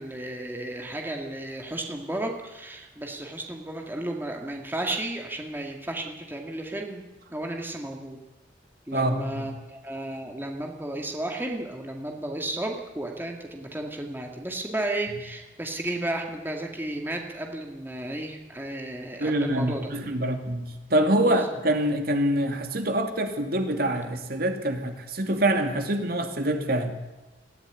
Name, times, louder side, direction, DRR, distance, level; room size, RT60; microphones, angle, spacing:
voice 1, 0.0-8.2 8.9-19.9 21.3-21.5, right 1 dB, 10° right, 2 dB, 2.1 m, -33 dB
voice 2, 8.9-9.4 19.2-26.9, right 1 dB, 55° right, 5 dB, 2.8 m, -25 dB
21.0 x 15.0 x 9.8 m, 1.1 s
head